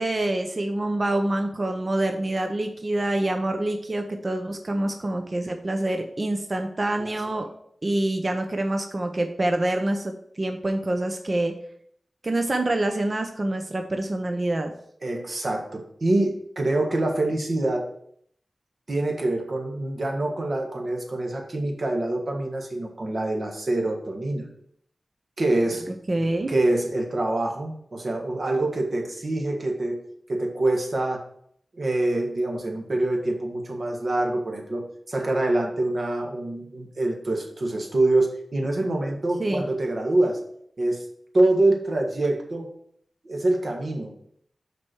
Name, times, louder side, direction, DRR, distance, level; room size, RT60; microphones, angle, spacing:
voice 1, 0.0-7.5 7.8-11.5 12.2-14.7 25.9-26.5 39.4-39.6, right 1 dB, 40° right, 5 dB, 0.8 m, -26 dB
voice 2, 15.0-17.9 18.9-24.5 25.4-25.9 26.5-30.0 30.3-31.2 31.7-40.4 40.8-41.1 41.3-42.7 43.2-44.2, right 2 dB, 60° right, 2 dB, 1.6 m, -25 dB
6.0 x 4.6 x 6.2 m, 0.67 s
wide cardioid pair, 60°, 0 cm